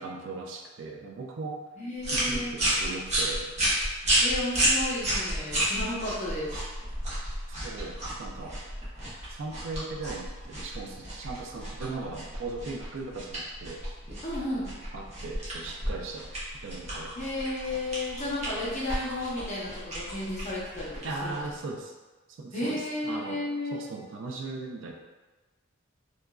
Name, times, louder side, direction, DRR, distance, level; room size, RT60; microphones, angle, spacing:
voice 1, 0.0-1.6 2.1-3.5 7.6-8.6 9.3-13.8 14.9-16.3 16.6-17.1 21.0-21.9 22.3-23.4 23.7-24.9, right 3 dB, 65° right, 2 dB, 0.3 m, -38 dB
voice 2, 1.8-2.6 4.2-6.6 14.2-14.7 17.1-21.5 22.5-23.8, left 1 dB, 35° left, -6 dB, 0.7 m, -33 dB
sound 1, 2.0-21.6, right 1 dB, 35° right, 0.7 m, -32 dB
2.9 x 2.4 x 2.3 m, 1.2 s
head